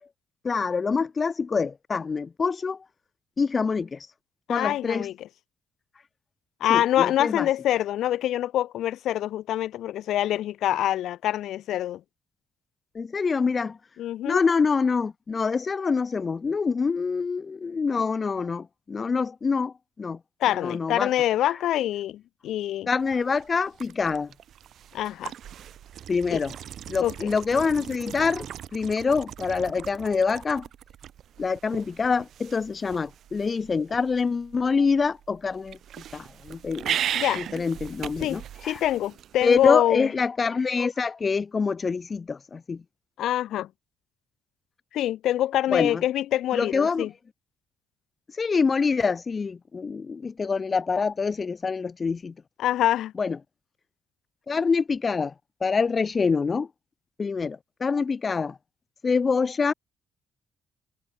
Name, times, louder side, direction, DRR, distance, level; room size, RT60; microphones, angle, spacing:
voice 1, 0.4-2.8 3.4-4.1 4.5-5.1 6.7-7.5 12.9-13.8 14.3-20.2 20.5-21.1 22.9-24.3 26.1-26.6 26.9-28.5 28.7-30.7 31.4-35.8 36.1-37.0 37.4-38.8 39.4-42.8 45.7-46.0 46.5-47.1 48.3-52.3 53.2-53.4 54.5-55.3 55.6-56.7 57.2-58.6 59.0-59.7, left 5 dB, 35° left, 0.5 m, -25 dB
voice 2, 4.5-5.3 6.6-12.0 14.0-14.4 20.4-22.9 24.9-25.3 26.3-26.4 27.0-27.3 37.1-37.4 38.2-40.1 43.2-43.7 44.9-47.1 52.6-53.1, left 12 dB, 80° left, 1.0 m, -25 dB
sound 1, 23.0-39.7, right 10 dB, 70° right, 1.6 m, -38 dB
cardioid pair, 90°, 0 cm